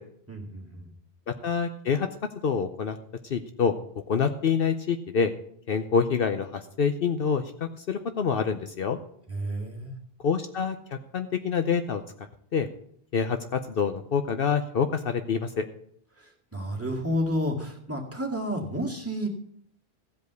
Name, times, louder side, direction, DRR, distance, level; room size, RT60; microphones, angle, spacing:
voice 1, 0.3-0.9 9.3-10.0 16.2-19.3, equal, 15° right, -1 dB, 2.1 m, -31 dB
voice 2, 1.3-2.1 2.4-3.0 3.3-3.7 4.1-5.3 5.7-7.4 7.9-9.0 10.2-10.8 11.1-12.0 12.5-12.7 13.1-15.7, left 6 dB, 60° left, 8 dB, 0.9 m, -26 dB
15.0 x 5.3 x 7.9 m, 0.67 s
omnidirectional pair, 1.1 m